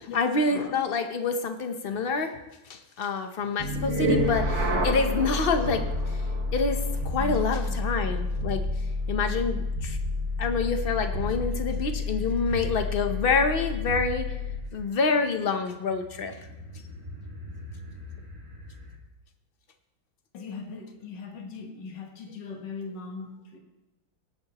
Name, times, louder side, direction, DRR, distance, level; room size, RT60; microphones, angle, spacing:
voice 1, 0.0-2.3 2.7-5.8 6.5-6.8 7.0-8.6 9.1-10.0 10.4-14.3 14.7-16.3, left 4 dB, 50° left, 7 dB, 0.7 m, -27 dB
sound 1, 3.6-14.7, left 2 dB, 70° right, 2.5 m, -29 dB
voice 2, 7.2-7.8 20.3-23.6, left 4 dB, 65° left, 2 dB, 2.0 m, -39 dB
sound 2, 8.9-19.0, left 1 dB, 15° right, 2.2 m, -46 dB
17.5 x 8.7 x 3.0 m, 1.0 s
omnidirectional pair, 2.1 m